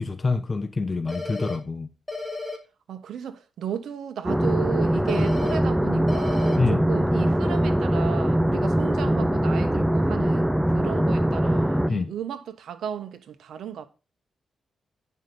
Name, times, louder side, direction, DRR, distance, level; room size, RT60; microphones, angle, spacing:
voice 1, 0.0-1.9 6.6-6.8 11.9-12.1, left 3 dB, 30° left, 1.1 m, -26 dB
sound 1, 1.1-1.6 2.1-2.6 5.1-5.6 6.1-6.6, left 3 dB, 10° left, 2.7 m, -33 dB
voice 2, 2.9-6.6 6.9-13.9, right 9 dB, 85° right, 1.1 m, -35 dB
sound 2, 4.2-11.9, right 1 dB, 5° right, 0.6 m, -22 dB
9.8 x 5.6 x 5.4 m
cardioid pair, 80°, 0 cm